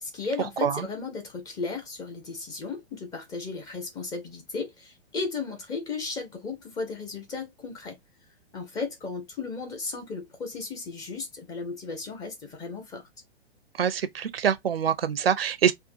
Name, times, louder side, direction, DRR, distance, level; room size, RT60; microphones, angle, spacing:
voice 1, 0.0-8.0 8.5-13.0, left 4 dB, 10° left, 0.5 m, -35 dB
voice 2, 13.8-15.7, right 8 dB, 65° right, 0.5 m, -25 dB
3.6 x 2.4 x 2.5 m
figure-of-eight pair, 110°, 31 cm